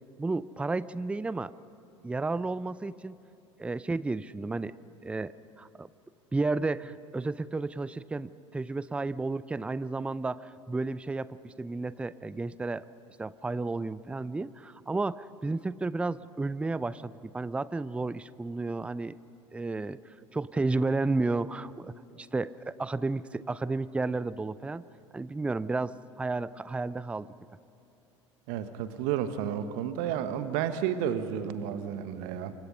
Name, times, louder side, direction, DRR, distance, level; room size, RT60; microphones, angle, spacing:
voice 1, 0.2-1.5 2.0-3.2 3.6-4.7 5.0-5.3 5.6-5.9 6.3-12.9 13.2-19.1 19.5-20.0 20.3-24.8 25.1-27.3, right 3 dB, 5° right, 18 dB, 0.5 m, -32 dB
voice 2, 28.5-32.5, right 9 dB, 55° right, 11 dB, 1.4 m, -31 dB
27.5 x 24.5 x 5.6 m, 2.8 s
figure-of-eight pair, 70°, 16 cm